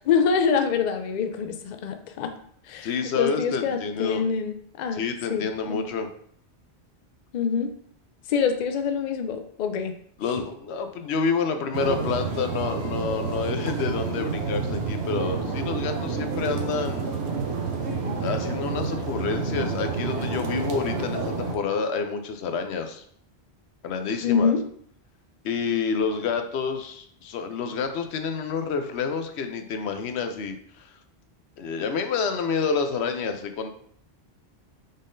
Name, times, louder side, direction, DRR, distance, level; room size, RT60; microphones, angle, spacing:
voice 1, 0.0-2.3 2.6-5.0 5.3-5.8 7.3-7.8 8.3-10.0 24.2-24.6, left 6 dB, 55° left, 7 dB, 0.5 m, -25 dB
voice 2, 2.8-4.2 4.9-6.1 10.2-17.1 18.2-23.0 23.8-24.5 25.4-30.9 31.6-33.7, left 5 dB, 85° left, 7 dB, 0.9 m, -28 dB
sound 1, 11.7-21.5, right 4 dB, 80° right, 1.0 m, -29 dB
5.4 x 3.6 x 2.6 m, 0.63 s
omnidirectional pair, 1.1 m